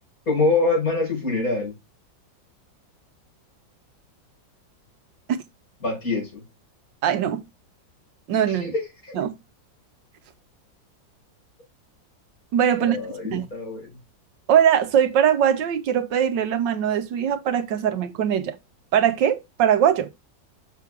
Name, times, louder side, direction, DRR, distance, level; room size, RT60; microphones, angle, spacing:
voice 1, 0.3-1.7 5.8-6.4 8.5-9.1 12.8-13.9, left 3 dB, 45° left, 5.9 m, -25 dB
voice 2, 7.0-7.4 8.3-8.7 9.2-9.3 12.5-13.0 13.3-13.4 14.5-18.6 18.9-20.1, right 9 dB, 75° right, 1.5 m, -21 dB
6.8 x 6.0 x 3.5 m
omnidirectional pair, 2.0 m